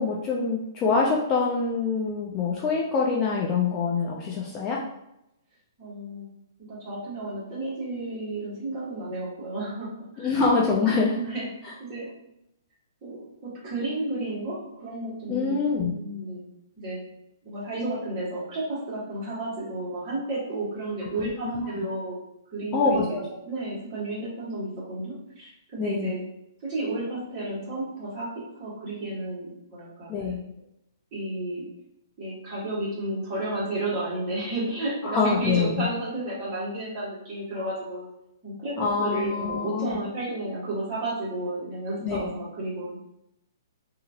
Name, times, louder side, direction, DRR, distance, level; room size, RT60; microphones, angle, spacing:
voice 1, 0.0-4.8 10.2-11.2 11.6-11.7 15.3-15.9 21.2-21.8 22.7-23.3 25.8-26.1 30.1-30.4 35.0-35.9 38.8-40.0 42.0-42.2, left 4 dB, 20° left, -3 dB, 0.4 m, -25 dB
voice 2, 5.8-6.3 6.6-10.4 10.9-11.5 11.8-12.1 13.0-16.4 16.8-17.0 17.4-22.2 22.5-23.2 23.4-26.2 26.6-30.1 31.1-31.6 32.2-38.1 38.4-43.0, right 2 dB, 25° right, -7 dB, 1.4 m, -32 dB
2.8 x 2.5 x 2.7 m, 0.82 s
hypercardioid pair, 160°, 2 cm